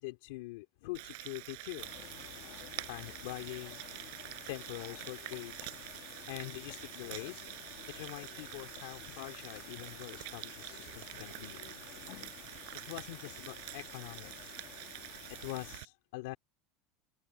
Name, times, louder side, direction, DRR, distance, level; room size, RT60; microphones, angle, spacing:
voice 1, 0.0-1.9 2.9-3.8 4.5-5.7 6.3-7.4 7.9-11.6 12.8-14.5 15.3-16.4, left 20 dB, 75° left, 2.4 m, -44 dB
Frying (food), 0.9-15.8, right 29 dB, 65° right, 6.9 m, -47 dB
sound 1, 1.8-15.8, left 19 dB, 55° left, 1.6 m, -52 dB
open air
cardioid pair, 165°, 0 cm